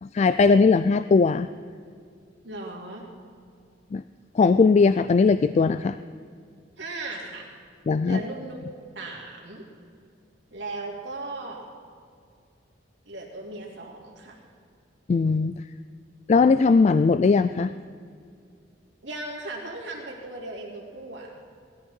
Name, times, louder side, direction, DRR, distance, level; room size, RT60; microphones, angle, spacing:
voice 1, 0.0-1.5 3.9-4.0 4.3-6.0 7.9-8.2 15.1-15.6 16.3-17.7, left 4 dB, 40° left, 12 dB, 0.3 m, -19 dB
voice 2, 2.4-3.1 6.8-7.5 8.0-8.6 8.9-9.6 10.5-11.6 13.1-14.4 19.0-21.3, right 2 dB, 75° right, -3 dB, 3.1 m, -37 dB
19.5 x 13.5 x 4.5 m, 2.2 s
head